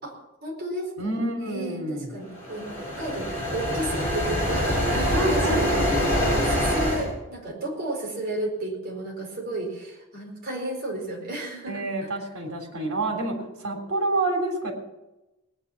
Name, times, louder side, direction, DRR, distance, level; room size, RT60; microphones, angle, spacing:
voice 1, 0.0-1.2 1.5-12.1, right 2 dB, 45° right, -1 dB, 4.4 m, -33 dB
voice 2, 1.0-2.2 4.9-5.9 11.7-13.3 13.6-14.7, right 2 dB, 90° right, 3 dB, 3.5 m, -28 dB
sound 1, 2.4-7.1, equal, 10° left, 6.9 m, -25 dB
19.0 x 9.7 x 5.8 m, 1.0 s
head